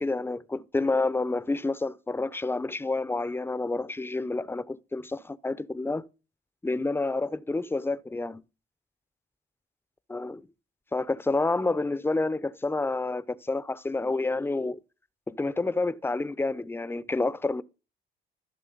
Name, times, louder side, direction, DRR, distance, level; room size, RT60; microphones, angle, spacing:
voice 1, 0.0-6.0 6.6-8.4 10.1-10.4 10.9-14.8 15.3-17.6, left 3 dB, 10° left, 0.6 m, -29 dB
14.5 x 6.4 x 3.9 m
cardioid pair, 90°, 20 cm